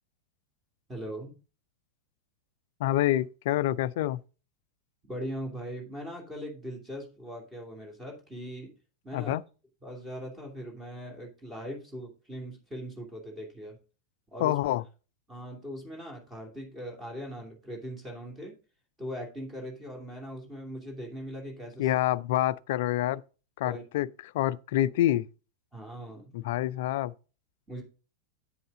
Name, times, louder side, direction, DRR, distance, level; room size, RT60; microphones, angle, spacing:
voice 1, 0.9-1.4 5.1-8.7 9.0-9.3 9.8-13.8 14.3-14.5 15.3-18.6 19.0-21.9 23.6-23.8 25.7-26.4 27.7-27.8, equal, 15° right, 2.8 m, -40 dB
voice 2, 2.8-4.2 9.1-9.4 14.4-14.8 21.8-23.2 23.6-24.1 24.3-25.3 26.3-27.1, left 14 dB, 55° left, 0.4 m, -27 dB
8.2 x 7.8 x 3.7 m
figure-of-eight pair, 90°, 0 cm